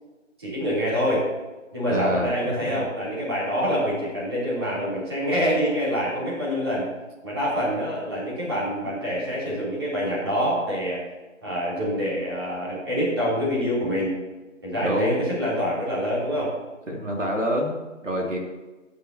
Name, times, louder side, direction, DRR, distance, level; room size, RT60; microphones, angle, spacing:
voice 1, 0.4-1.2 1.7-6.9 7.2-11.0 11.4-14.2 14.6-16.5, equal, 20° right, -9 dB, 3.2 m, -26 dB
voice 2, 1.9-2.7 14.8-15.3 16.9-18.4, equal, 70° right, -1 dB, 2.8 m, -27 dB
15.0 x 10.0 x 2.8 m, 1.2 s
figure-of-eight pair, 175°, 39 cm